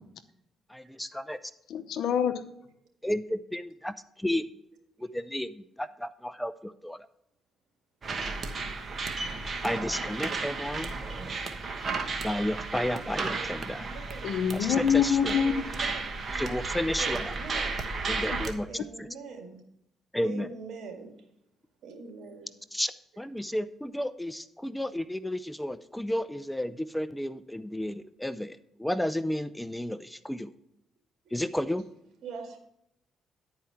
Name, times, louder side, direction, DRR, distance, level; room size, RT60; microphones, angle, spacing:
voice 1, 0.7-1.4 3.0-4.5 5.1-7.0 9.6-10.9 12.2-13.9 14.5-15.4 16.3-17.3 18.1-18.7 19.0-19.1 20.1-20.5 22.7-22.9 23.2-30.5 31.3-31.8, left 1 dB, 5° left, 0.4 m, -32 dB
voice 2, 1.7-2.3 14.2-15.6, left 7 dB, 75° left, 0.7 m, -25 dB
sound 1, 8.0-18.5, right 4 dB, 40° right, 1.1 m, -33 dB
voice 3, 13.4-14.4 15.3-16.2 17.0-17.9 18.7-19.6 20.2-21.1 21.8-22.5 31.3-31.4 31.7-31.8 32.2-32.6, right 4 dB, 70° right, 1.9 m, -43 dB
10.5 x 4.7 x 5.7 m
cardioid pair, 90°, 0 cm